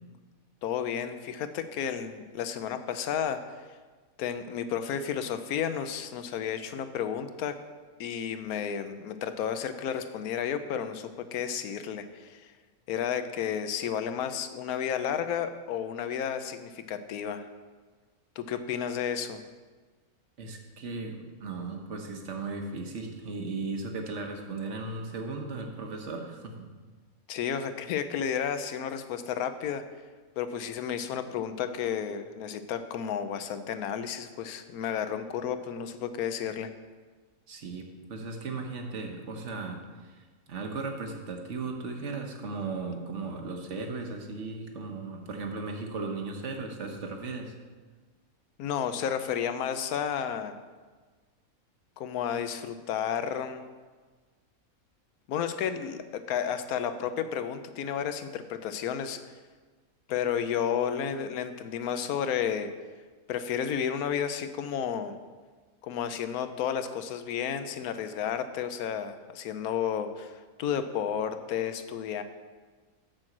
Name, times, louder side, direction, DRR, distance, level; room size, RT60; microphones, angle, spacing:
voice 1, 0.6-3.4 4.2-7.6 8.0-12.5 12.9-17.5 18.4-19.4 27.3-29.8 30.4-36.7 48.6-50.6 52.0-53.6 55.3-59.2 60.1-62.7 63.3-65.1 65.8-72.2, left 8 dB, 85° left, 10 dB, 1.1 m, -32 dB
voice 2, 20.4-26.7 37.5-47.5, right 3 dB, 55° right, 3 dB, 1.3 m, -36 dB
6.8 x 6.1 x 7.3 m, 1.4 s
omnidirectional pair, 1.5 m